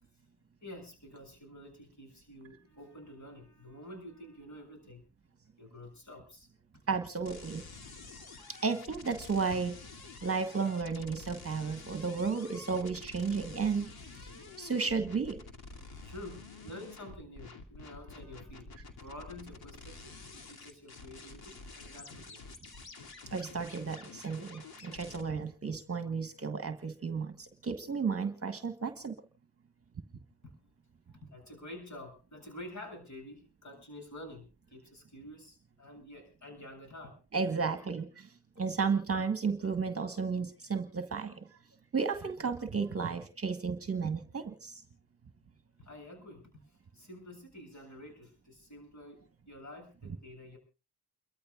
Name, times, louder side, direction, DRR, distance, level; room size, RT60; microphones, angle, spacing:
voice 1, 0.6-5.0 5.6-6.5 16.0-18.7 19.0-22.5 30.4-30.5 31.1-37.2 45.8-50.6, left 1 dB, 45° left, 4 dB, 7.7 m, -49 dB
voice 2, 6.9-7.6 8.5-9.7 10.2-13.9 14.1-14.3 14.6-15.4 23.3-29.1 37.3-41.5 41.9-44.8, right 5 dB, 35° right, 9 dB, 1.4 m, -33 dB
sound 1, 7.2-25.2, left 3 dB, 65° left, 2.6 m, -49 dB
29.5 x 13.5 x 2.4 m, 0.31 s
cardioid pair, 70°, 40 cm